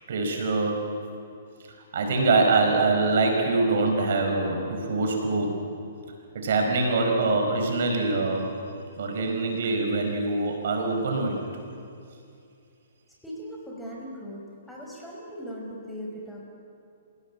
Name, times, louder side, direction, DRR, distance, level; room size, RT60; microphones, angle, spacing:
voice 1, 0.1-0.9 1.9-5.6 6.3-8.5 9.0-11.4, right 3 dB, 65° right, 2 dB, 5.3 m, -24 dB
voice 2, 13.2-16.4, equal, 5° left, -3 dB, 5.5 m, -39 dB
29.0 x 17.0 x 8.7 m, 2.5 s
hypercardioid pair, 140°, 0 cm